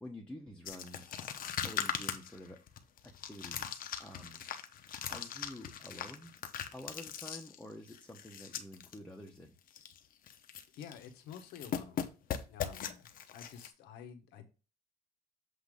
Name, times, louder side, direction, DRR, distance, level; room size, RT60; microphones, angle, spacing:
voice 1, 0.0-1.2 1.6-2.6 3.2-3.7 4.0-4.4 5.1-6.3 6.7-9.6, left 1 dB, 5° left, -1 dB, 1.1 m, -49 dB
sound 1, 0.6-9.0 9.3-9.4 9.7-10.0 10.3-11.0 11.3-13.7, left 9 dB, 55° left, 1.0 m, -40 dB
voice 2, 10.7-13.1 13.3-14.4, left 8 dB, 85° left, 7 dB, 1.4 m, -50 dB
8.1 x 2.9 x 5.1 m, 0.32 s
cardioid pair, 110°, 17 cm